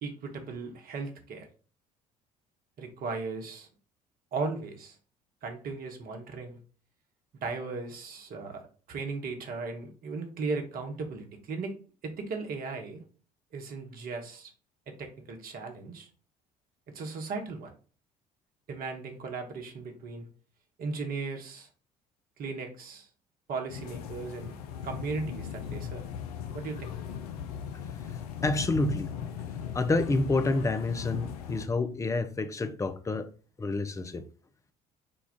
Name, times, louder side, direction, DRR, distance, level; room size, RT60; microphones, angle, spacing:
voice 1, 0.0-1.5 2.8-3.7 4.3-5.0 5.4-6.6 7.4-8.6 8.9-11.7 12.0-13.0 13.5-14.5 14.9-16.1 16.9-17.7 18.7-20.3 20.8-21.7 22.4-23.1 23.5-24.6 24.8-26.0 26.5-26.9, right 4 dB, 50° right, 0.9 m, -37 dB
sound 1, 23.7-31.7, left 8 dB, 75° left, 0.4 m, -38 dB
voice 2, 28.4-29.1 29.7-33.3 33.6-34.2, left 2 dB, 15° left, 0.4 m, -28 dB
3.8 x 2.3 x 3.6 m
figure-of-eight pair, 55°, 20 cm